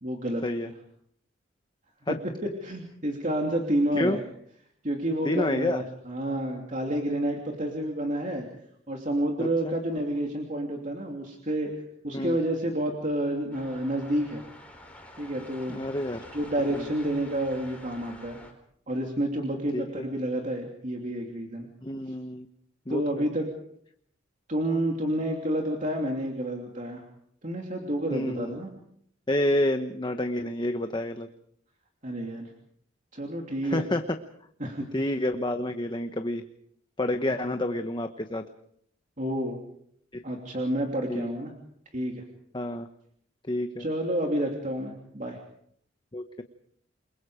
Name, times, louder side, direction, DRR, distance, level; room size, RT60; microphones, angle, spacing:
voice 1, 0.0-0.4 2.1-2.2 2.6-4.2 4.8-8.5 8.9-11.7 12.0-14.4 15.2-15.8 16.3-18.4 18.9-21.7 22.9-23.4 24.5-27.0 27.4-28.7 32.0-32.5 33.1-33.9 34.6-34.9 37.3-37.4 39.2-39.6 40.2-41.5 41.9-42.2 43.8-45.4, right 1 dB, 40° right, 1 dB, 3.0 m, -29 dB
voice 2, 5.2-5.8 9.4-9.7 12.1-12.4 15.7-16.3 16.7-16.8 19.7-20.1 21.8-22.5 22.9-23.3 28.1-28.6 29.3-31.3 33.6-34.0 34.8-36.4 37.0-38.4 40.1-40.2 41.1-41.3 42.5-42.9 43.5-43.9 46.1-46.4, left 1 dB, 25° left, 7 dB, 1.1 m, -29 dB
sound 1, 13.5-18.5, left 1 dB, 5° left, 4.3 m, -48 dB
28.5 x 22.0 x 5.1 m, 0.67 s
head